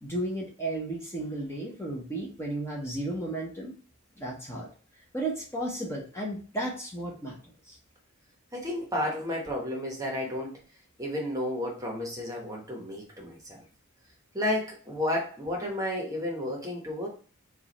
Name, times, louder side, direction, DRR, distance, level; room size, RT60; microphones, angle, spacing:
voice 1, 0.0-3.7 4.2-4.7 5.1-7.8, right 1 dB, 10° left, -3 dB, 0.8 m, -34 dB
voice 2, 8.5-10.6 11.0-13.6 14.3-17.1, left 1 dB, 15° right, 0 dB, 0.9 m, -32 dB
4.6 x 2.4 x 4.1 m, 0.40 s
head